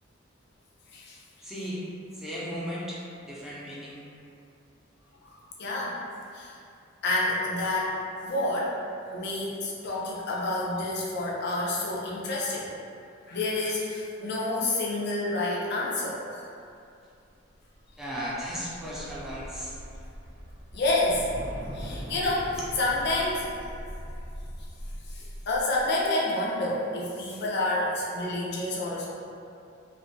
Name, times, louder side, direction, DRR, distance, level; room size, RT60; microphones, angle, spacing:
voice 1, 1.4-1.8 2.1-4.0 18.0-19.7, equal, ahead, -8 dB, 0.5 m, -36 dB
voice 2, 5.2-6.0 6.3-6.6 7.0-8.8 9.1-12.7 13.3-16.2 20.7-21.3 21.6-23.5 25.1-29.1, left 2 dB, 60° left, -5 dB, 0.5 m, -29 dB
sound 1, 17.5-25.9, equal, 80° right, 0.7 m, -41 dB
2.5 x 2.2 x 2.6 m, 2.5 s
head